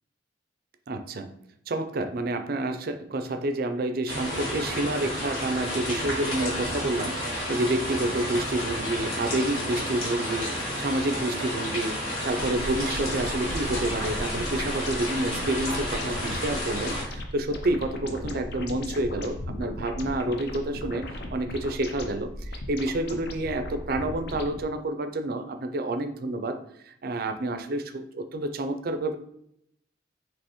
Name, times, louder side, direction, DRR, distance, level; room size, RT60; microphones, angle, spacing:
voice 1, 0.9-1.3 1.7-21.0 21.3-26.6 26.9-29.2, right 1 dB, 45° right, 8 dB, 0.4 m, -29 dB
sound 1, 4.1-17.0, equal, 90° left, 1.7 m, -31 dB
sound 2, 12.3-24.6, left 1 dB, 55° left, 0.5 m, -36 dB
5.2 x 2.9 x 3.0 m, 0.73 s
head